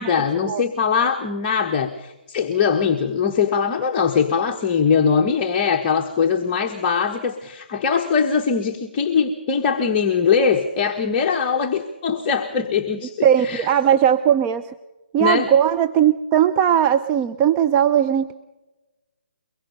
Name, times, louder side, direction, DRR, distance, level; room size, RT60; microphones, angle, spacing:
voice 1, 0.0-13.7 15.2-15.5, left 6 dB, 30° left, 1 dB, 1.3 m, -21 dB
voice 2, 13.2-14.7 15.1-18.3, right 9 dB, 20° right, 8 dB, 0.6 m, -18 dB
23.5 x 21.5 x 5.3 m, 1.1 s
hypercardioid pair, 145°, 6 cm